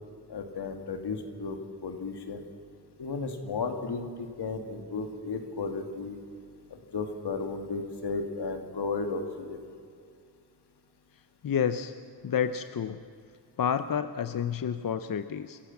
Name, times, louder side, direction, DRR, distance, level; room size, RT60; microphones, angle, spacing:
voice 1, 0.3-1.6 1.8-2.4 3.0-6.2 6.9-9.6, left 4 dB, 90° left, 5 dB, 2.4 m, -34 dB
voice 2, 11.4-11.9 12.2-13.0 13.6-15.6, left 8 dB, 60° left, 11 dB, 0.8 m, -29 dB
27.0 x 15.5 x 7.3 m, 2.4 s
wide cardioid pair, 120°, 39 cm